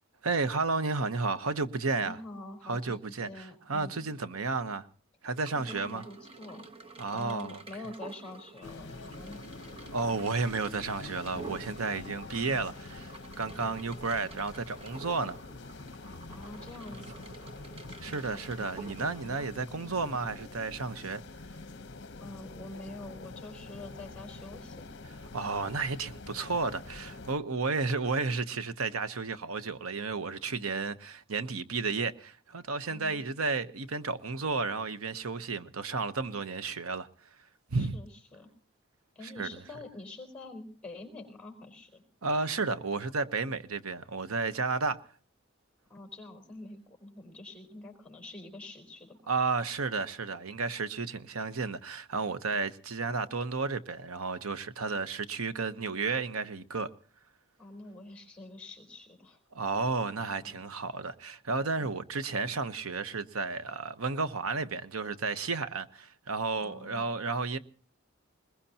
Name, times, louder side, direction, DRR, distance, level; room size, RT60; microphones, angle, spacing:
voice 1, 0.2-2.2 2.6-4.9 5.2-6.0 7.0-7.6 9.9-15.4 18.0-21.2 25.3-37.1 37.7-38.0 39.2-39.5 42.2-45.0 49.3-56.9 59.5-67.6, right 4 dB, 90° right, 1.0 m, -32 dB
voice 2, 2.0-4.1 5.5-6.7 7.1-9.4 16.3-17.3 22.2-25.0 32.9-33.2 37.7-38.5 39.1-42.0 45.9-49.2 57.6-59.4 60.4-60.6 61.8-61.9 66.6-67.0, left 2 dB, 5° left, 4.3 m, -46 dB
sound 1, 5.3-19.6, right 4 dB, 25° right, 1.1 m, -49 dB
sound 2, 8.6-27.3, left 3 dB, 55° left, 0.9 m, -46 dB
21.5 x 21.0 x 2.9 m
head